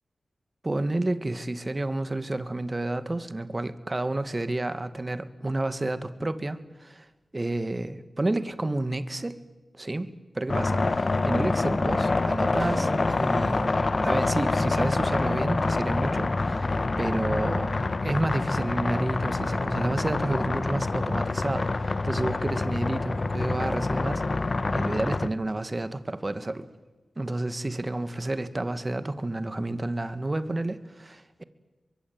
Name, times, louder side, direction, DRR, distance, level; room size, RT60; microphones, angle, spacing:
voice 1, 0.6-7.1 7.3-9.4 9.8-13.8 14.0-16.7 17.0-24.2 24.7-26.7 27.2-31.4, right 2 dB, 30° right, 13 dB, 2.0 m, -30 dB
sound 1, 10.5-25.3, left 3 dB, 50° left, 1.1 m, -26 dB
sound 2, 12.6-17.0, right 1 dB, 15° right, 2.5 m, -41 dB
23.5 x 23.0 x 8.9 m, 1.2 s
cardioid pair, 50°, 0 cm